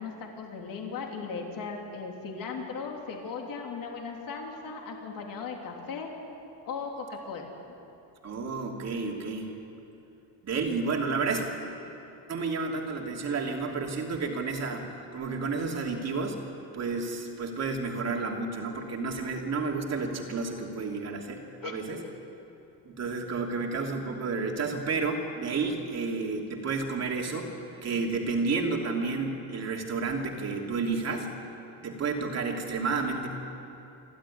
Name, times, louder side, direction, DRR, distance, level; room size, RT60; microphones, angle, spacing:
voice 1, 0.0-6.1 6.7-7.5 21.6-21.8, left 5 dB, 50° left, 1 dB, 3.4 m, -37 dB
voice 2, 8.2-9.5 10.4-11.4 12.3-16.4 16.7-22.0 22.8-31.5 31.8-33.3, right 4 dB, 35° right, 1 dB, 2.9 m, -31 dB
29.0 x 12.5 x 9.9 m, 2.9 s
cardioid pair, 145°, 43 cm